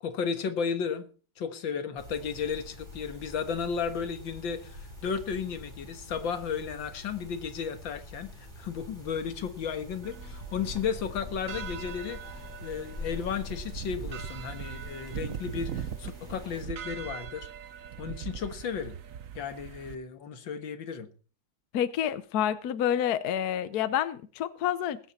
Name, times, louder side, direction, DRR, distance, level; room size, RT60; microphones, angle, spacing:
voice 1, 0.0-1.1 1.4-17.5 18.0-18.9 19.3-21.1, left 6 dB, 85° left, 2.2 m, -34 dB
sound 1, 2.0-16.6, left 2 dB, 25° right, 4.7 m, -45 dB
sound 2, 10.0-20.0, right 9 dB, 55° right, 1.1 m, -41 dB
voice 2, 21.7-25.0, left 10 dB, 60° left, 1.2 m, -28 dB
20.0 x 9.9 x 4.2 m
omnidirectional pair, 2.0 m